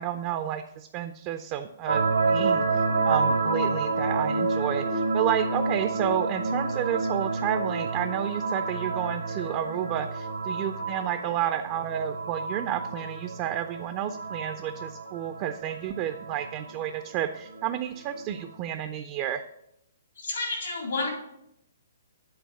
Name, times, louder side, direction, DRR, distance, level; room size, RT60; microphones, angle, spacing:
voice 1, 0.0-19.4, right 10 dB, 35° right, 8 dB, 0.4 m, -31 dB
sound 1, 1.9-18.4, right 3 dB, 75° right, 0.8 m, -29 dB
voice 2, 20.2-21.1, left 3 dB, 75° left, 0 dB, 3.3 m, -30 dB
8.0 x 3.9 x 6.4 m, 0.79 s
figure-of-eight pair, 125°, 0 cm